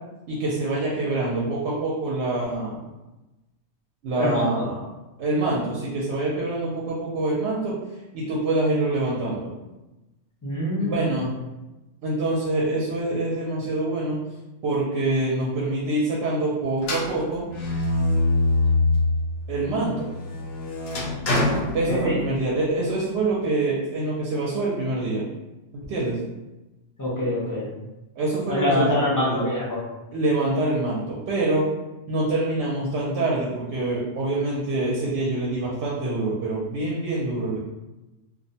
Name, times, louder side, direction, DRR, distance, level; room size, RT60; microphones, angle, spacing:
voice 1, 0.3-2.8 4.0-4.9 5.2-7.7 8.1-9.5 10.8-11.3 12.0-14.2 14.6-17.5 19.5-20.1 21.7-25.2 25.7-26.2 28.2-29.4 30.1-31.7 32.1-37.6, right 2 dB, 65° right, -5 dB, 0.8 m, -25 dB
voice 2, 4.2-4.6 10.4-11.0 21.9-22.2 27.0-27.7 28.5-29.8, left 1 dB, 25° left, -7 dB, 0.5 m, -24 dB
sound 1, 16.8-19.2 19.7-22.5, left 2 dB, 65° left, 0.7 m, -24 dB
2.4 x 2.1 x 2.6 m, 1.0 s
omnidirectional pair, 1.3 m